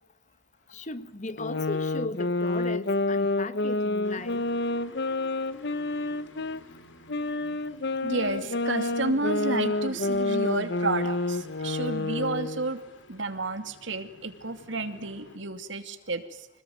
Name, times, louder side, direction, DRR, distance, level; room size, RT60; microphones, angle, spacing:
voice 1, 0.7-4.5 9.2-9.3, left 2 dB, 40° left, 1.4 m, -37 dB
sound 1, 1.4-6.6 7.1-12.7, left 2 dB, 60° left, 1.0 m, -29 dB
sound 2, 4.0-15.4, left 2 dB, 80° left, 3.6 m, -51 dB
voice 2, 8.0-12.8 13.1-16.5, right 3 dB, 80° right, 2.6 m, -31 dB
26.0 x 20.0 x 9.4 m
head